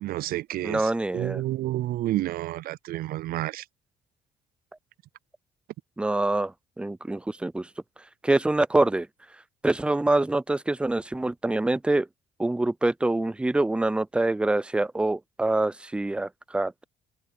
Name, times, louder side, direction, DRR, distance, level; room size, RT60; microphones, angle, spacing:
voice 1, 0.0-3.6, right 15 dB, 60° right, 0.4 m, -30 dB
voice 2, 0.6-1.4 6.0-7.7 8.2-9.1 9.6-12.1 12.4-16.8, right 2 dB, 5° right, 0.4 m, -25 dB
cardioid pair, 110°, 17 cm